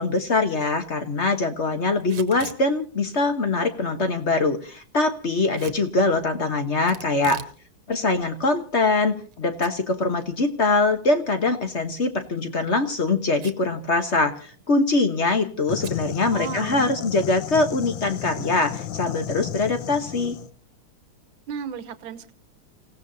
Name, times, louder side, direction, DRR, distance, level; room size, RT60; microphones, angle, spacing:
voice 1, 0.0-7.4 7.9-20.4, left 3 dB, 40° left, 7 dB, 1.2 m, -23 dB
Packing tape duct tape / Tearing, 2.0-2.6 5.5-5.8 6.9-7.6 7.9-8.0 8.7-9.3 9.6-9.7 10.1-10.2 12.2-12.4 13.4-13.7 14.0-14.1 14.4-14.7 15.8-16.0, right 9 dB, 85° right, 1.9 m, -40 dB
sound 1, 15.7-20.5, left 11 dB, 65° left, 1.7 m, -34 dB
voice 2, 16.3-17.0 21.5-22.3, right 7 dB, 65° right, 12 dB, 1.8 m, -34 dB
30.0 x 16.5 x 2.8 m, 0.40 s
omnidirectional pair, 2.4 m